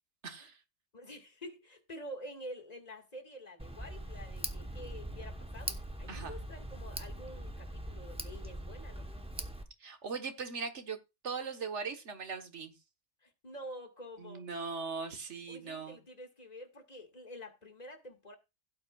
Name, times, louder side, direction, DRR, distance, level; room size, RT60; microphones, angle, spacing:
voice 1, 0.2-0.6 6.1-6.4 9.8-11.0 11.2-12.7 14.2-16.0, right 5 dB, 80° right, 1.7 m, -39 dB
voice 2, 0.9-9.1 13.2-14.5 15.5-18.4, equal, 35° left, 2.1 m, -48 dB
Tick, 3.6-9.6, right 1 dB, 5° right, 0.9 m, -42 dB
16.5 x 8.9 x 2.4 m
omnidirectional pair, 1.2 m